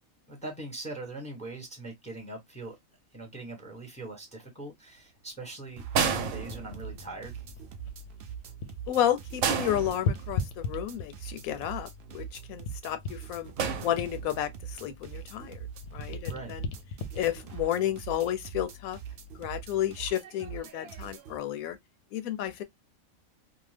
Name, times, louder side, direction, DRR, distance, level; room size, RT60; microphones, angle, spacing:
voice 1, 0.3-2.8 3.1-7.3 16.2-16.5, right 2 dB, 5° left, 0.8 m, -41 dB
sound 1, 5.8-21.4, right 7 dB, 60° right, 0.7 m, -43 dB
sound 2, 5.9-7.2 9.4-10.6 13.6-14.5 15.8-16.0, right 6 dB, 80° right, 1.1 m, -31 dB
sound 3, 6.2-8.9 9.2-11.4 11.9-15.5 15.7-18.5 19.1-19.3, left 4 dB, 65° left, 0.7 m, -38 dB
voice 2, 8.9-13.5 13.8-15.6 15.9-16.7 17.1-19.0 19.4-21.8 22.1-22.6, left 11 dB, 90° left, 1.0 m, -31 dB
2.8 x 2.1 x 3.1 m
omnidirectional pair, 1.4 m